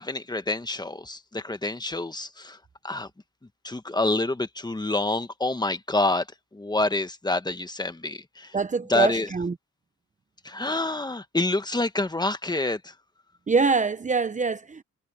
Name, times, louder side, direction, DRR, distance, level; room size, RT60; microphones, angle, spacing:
voice 1, 0.0-2.6 2.8-3.1 3.6-6.2 6.5-8.5 8.9-9.3 10.4-12.9, left 2 dB, 15° left, 1.5 m, -27 dB
voice 2, 8.5-9.5 13.5-14.8, right 4 dB, 25° right, 0.9 m, -24 dB
cardioid pair, 90°, 30 cm